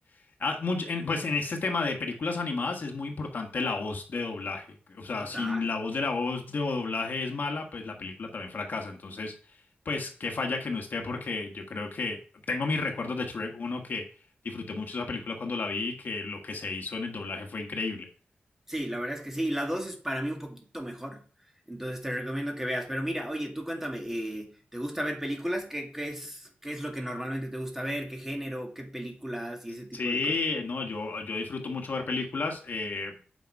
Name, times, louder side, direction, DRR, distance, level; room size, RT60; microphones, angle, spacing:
voice 1, 0.4-9.3 9.8-12.2 12.5-14.0 14.4-18.1 29.9-33.1, left 3 dB, 60° left, 3 dB, 1.6 m, -32 dB
voice 2, 5.2-5.7 18.7-21.2 21.7-30.4, equal, 10° right, 2 dB, 2.0 m, -34 dB
9.1 x 5.3 x 4.8 m, 0.40 s
wide cardioid pair, 115°, 4 cm